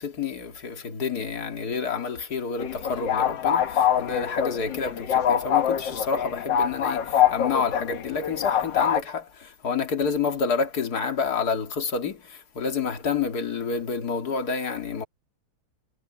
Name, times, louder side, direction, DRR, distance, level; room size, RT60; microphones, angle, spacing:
voice 1, 0.0-15.0, left 5 dB, 45° left, 2.6 m, -29 dB
sound 1, 2.6-9.0, left 9 dB, 60° left, 1.8 m, -24 dB
omnidirectional pair, 2.4 m